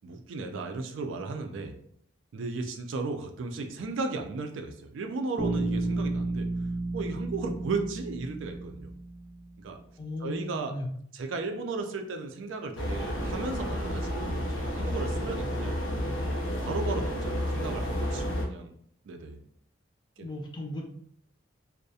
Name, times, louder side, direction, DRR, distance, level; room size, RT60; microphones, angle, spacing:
voice 1, 0.0-1.7 2.3-6.5 6.9-8.9 9.6-9.8 10.2-10.7 11.1-15.7 16.2-18.7 19.0-19.4 20.2-20.3, right 3 dB, 70° right, 5 dB, 0.4 m, -35 dB
Bass guitar, 5.4-9.4, right 2 dB, 25° right, 0.6 m, -32 dB
voice 2, 10.0-10.9 18.3-18.4 20.2-20.8, left 1 dB, 20° left, 1 dB, 0.3 m, -37 dB
sound 1, 12.8-18.5, equal, 75° left, 0.5 m, -31 dB
2.3 x 2.0 x 2.6 m, 0.64 s
head